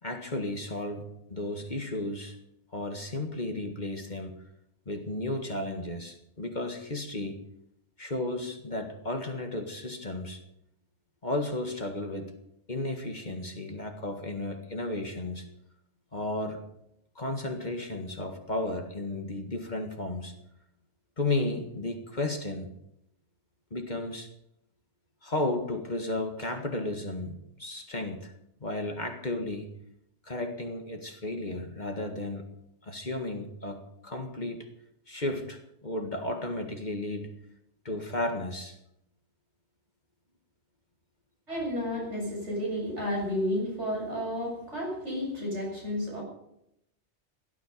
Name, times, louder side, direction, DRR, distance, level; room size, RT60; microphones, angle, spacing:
voice 1, 0.0-1.1 1.3-2.4 2.7-4.4 4.9-7.4 8.0-10.4 11.2-12.3 12.7-15.5 16.1-16.7 17.2-20.4 21.2-22.7 23.7-24.3 25.2-28.3 28.6-29.7 30.2-32.5 32.8-34.7 35.1-37.3 37.9-38.8, left 2 dB, 40° left, 5 dB, 1.8 m, -33 dB
voice 2, 41.5-46.2, left 1 dB, 70° right, -2 dB, 7.8 m, -32 dB
17.0 x 13.0 x 5.3 m, 0.77 s
omnidirectional pair, 1.2 m